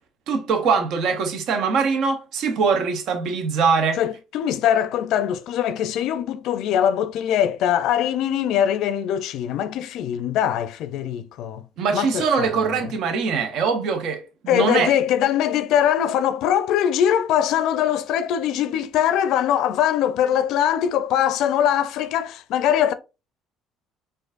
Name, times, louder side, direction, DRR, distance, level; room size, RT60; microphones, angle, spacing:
voice 1, 0.3-4.0 11.8-14.9, right 5 dB, 65° right, 0.8 m, -22 dB
voice 2, 4.0-11.7 11.9-12.8 14.5-22.9, left 10 dB, 70° left, 0.4 m, -22 dB
4.4 x 2.5 x 2.5 m
cardioid pair, 110°, 0 cm